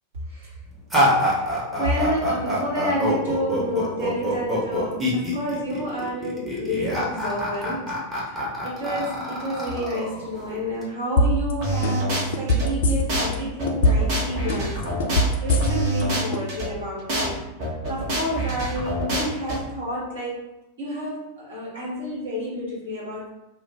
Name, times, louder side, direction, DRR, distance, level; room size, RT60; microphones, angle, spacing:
voice 1, 0.3-0.6 1.1-15.0 15.4-20.4 20.8-23.3, equal, 65° right, -6 dB, 1.2 m, -30 dB
sound 1, 0.9-10.8, equal, 10° right, 0.9 m, -25 dB
sound 2, 11.2-11.5 11.8-13.3 13.7-14.2 14.5-16.0 16.3-16.4, left 1 dB, 60° left, 0.3 m, -20 dB
sound 3, 11.6-12.7 13.1-13.3 13.6-16.7 17.1-17.3 17.6-19.6, right 1 dB, 45° right, 0.8 m, -26 dB
2.4 x 2.0 x 3.3 m, 0.92 s
figure-of-eight pair, 90°, 0 cm